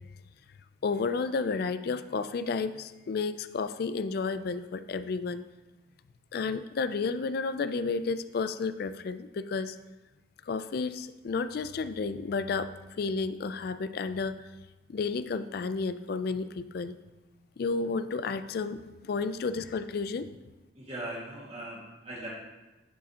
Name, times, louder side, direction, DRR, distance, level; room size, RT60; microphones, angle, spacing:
voice 1, 0.8-5.4 6.3-9.8 10.5-12.7 13.0-14.3 14.9-17.0 17.6-20.3, left 4 dB, 50° left, 11 dB, 0.3 m, -31 dB
voice 2, 20.8-22.3, right 1 dB, 35° right, -5 dB, 1.9 m, -39 dB
10.5 x 5.0 x 2.8 m, 1.1 s
head